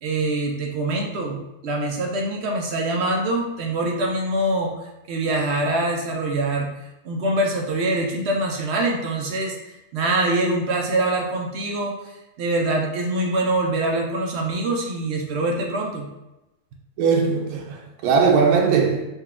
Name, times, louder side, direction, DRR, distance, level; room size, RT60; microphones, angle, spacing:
voice 1, 0.0-4.7 5.1-6.7 7.0-11.9 12.4-16.1, right 2 dB, 65° right, 0.6 m, -24 dB
voice 2, 17.0-19.1, right 5 dB, 90° right, 1.1 m, -19 dB
4.3 x 2.2 x 3.5 m
omnidirectional pair, 1.6 m